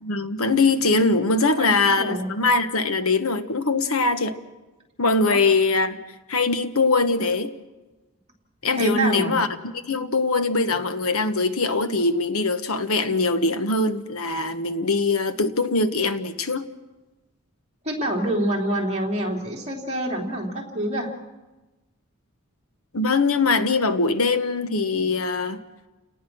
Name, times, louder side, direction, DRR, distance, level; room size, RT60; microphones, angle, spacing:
voice 1, 0.0-4.4 5.0-6.0 6.3-7.5 8.6-9.5 9.9-16.7 22.9-25.6, left 3 dB, 80° left, 1.3 m, -22 dB
voice 2, 1.4-2.3 5.3-5.4 8.8-9.4 17.8-21.1, right 1 dB, 30° right, 3.4 m, -26 dB
30.0 x 18.5 x 6.2 m
head